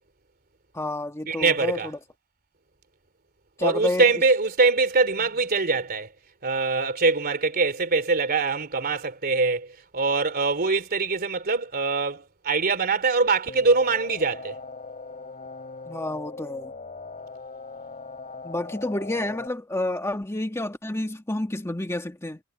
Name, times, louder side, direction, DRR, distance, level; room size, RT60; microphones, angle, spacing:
voice 1, 0.7-2.0 3.6-4.1 15.9-16.7 18.4-22.4, left 1 dB, 15° left, 1.5 m, -29 dB
voice 2, 1.3-1.9 3.6-6.1 6.4-14.6, right 3 dB, 45° right, 3.1 m, -23 dB
sound 1, 13.5-19.5, left 4 dB, 35° left, 4.0 m, -40 dB
head